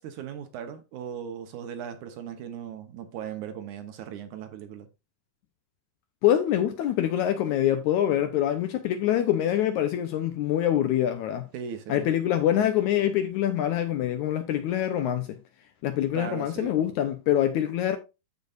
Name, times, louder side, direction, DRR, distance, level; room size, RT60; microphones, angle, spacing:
voice 1, 0.0-4.9 11.5-12.1 16.1-16.7, right 8 dB, 70° right, 2.2 m, -38 dB
voice 2, 6.2-11.5 11.9-15.4 15.8-18.0, left 11 dB, 75° left, 1.8 m, -25 dB
14.0 x 4.7 x 2.5 m
omnidirectional pair, 4.0 m